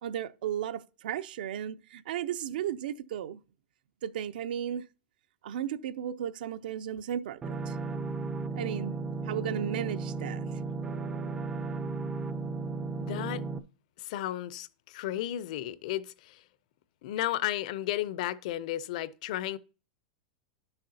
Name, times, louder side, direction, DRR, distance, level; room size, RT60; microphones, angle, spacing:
voice 1, 0.0-3.4 4.0-4.8 5.4-7.8 8.5-9.0 9.3-10.4, right 10 dB, 70° right, 0.5 m, -35 dB
sound 1, 7.4-13.6, right 4 dB, 10° right, 0.4 m, -35 dB
voice 2, 13.0-13.4 14.0-16.4 17.0-19.6, left 13 dB, 50° left, 0.5 m, -33 dB
11.0 x 6.5 x 2.7 m
supercardioid pair, 170°, 5 cm